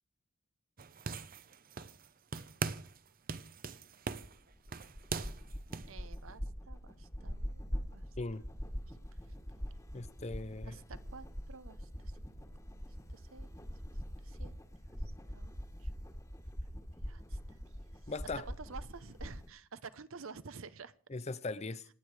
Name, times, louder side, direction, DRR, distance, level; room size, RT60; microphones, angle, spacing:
sound 1, 0.8-2.1 2.3-3.0 3.3-5.9, right 4 dB, 45° right, 0.8 m, -40 dB
sound 2, 4.2-19.5, equal, 15° left, 1.6 m, -43 dB
voice 1, 5.9-8.0 8.9-9.4 10.6-12.2 13.1-13.5 14.2-14.5 15.0-15.5 15.8-15.9 17.1-17.6 17.9-18.1 18.5-20.9, right 4 dB, 70° right, 0.9 m, -51 dB
voice 2, 9.9-10.7 18.1-18.4 21.1-21.9, left 3 dB, 30° left, 0.7 m, -39 dB
27.0 x 9.3 x 4.8 m
head